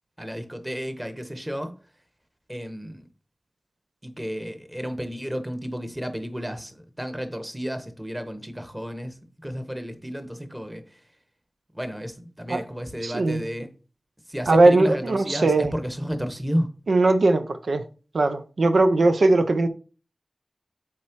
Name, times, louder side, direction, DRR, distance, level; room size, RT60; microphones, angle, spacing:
voice 1, 0.2-1.7 2.5-3.1 4.0-11.0 11.7-13.7 14.3-16.7, equal, 15° right, 1.3 m, -32 dB
voice 2, 13.0-13.4 14.5-15.7 16.9-17.8 18.1-19.7, right 2 dB, 90° right, 0.6 m, -19 dB
7.4 x 4.5 x 4.6 m
wide cardioid pair, 70°, 0 cm